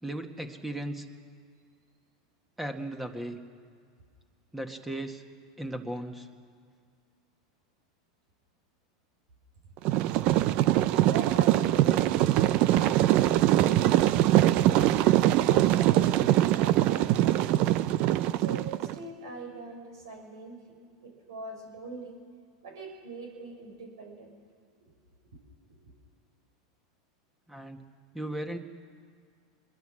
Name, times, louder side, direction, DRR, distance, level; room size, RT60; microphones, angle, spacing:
voice 1, 0.0-1.1 2.6-3.4 4.5-5.2 5.6-6.3 27.5-27.8 28.1-28.6, right 1 dB, 5° right, 5 dB, 1.9 m, -36 dB
sound 1, 9.8-18.9, right 14 dB, 55° right, 0.7 m, -23 dB
voice 2, 10.7-15.0 15.5-17.7 18.3-20.8 21.0-22.1 22.6-24.3 25.8-25.9, right 3 dB, 80° right, 2 dB, 5.9 m, -43 dB
24.5 x 21.5 x 6.4 m, 2.1 s
hypercardioid pair, 95°, 2 cm